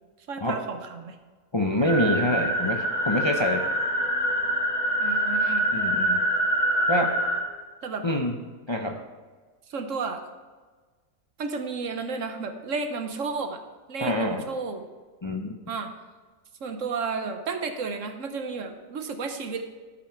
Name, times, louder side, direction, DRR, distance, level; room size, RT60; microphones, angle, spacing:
voice 1, 0.3-1.2 5.0-5.7 7.8-8.0 9.7-10.2 11.4-13.6 13.9-14.8 15.7-15.9 16.6-19.6, right 4 dB, 65° right, 7 dB, 1.2 m, -32 dB
voice 2, 1.5-3.7 5.7-6.2 6.9-7.1 8.0-8.3 8.7-9.0 14.0-14.5 15.2-15.6, left 1 dB, 25° left, 2 dB, 0.6 m, -26 dB
sound 1, 1.9-7.4, right 1 dB, 75° left, 4.1 m, -25 dB
13.0 x 8.3 x 4.5 m, 1.4 s
omnidirectional pair, 1.5 m